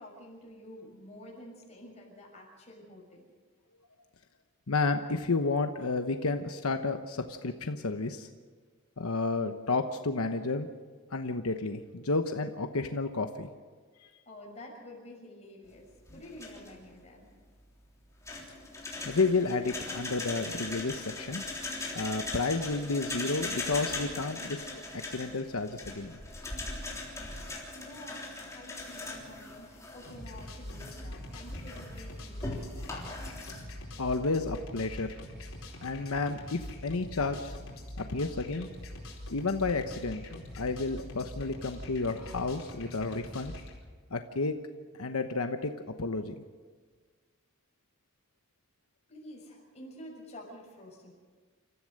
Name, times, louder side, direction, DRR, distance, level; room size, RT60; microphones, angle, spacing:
voice 1, 0.0-3.3 14.2-17.3 27.2-33.0 49.1-51.1, left 1 dB, 30° left, -1 dB, 6.4 m, -49 dB
voice 2, 4.7-8.3 9.0-10.7 11.1-13.5 14.0-14.1 19.0-21.4 21.9-24.7 24.9-26.2 34.0-35.1 35.8-37.5 38.1-38.7 39.3-43.5 44.1-44.5 45.0-45.7 46.0-46.3, left 3 dB, 90° left, 6 dB, 1.0 m, -31 dB
sound 1, 16.1-16.9 18.3-33.6, left 2 dB, 15° left, 3.5 m, -40 dB
sound 2, 30.0-43.8, left 1 dB, 70° left, 4.5 m, -44 dB
28.5 x 14.5 x 6.6 m, 1.5 s
head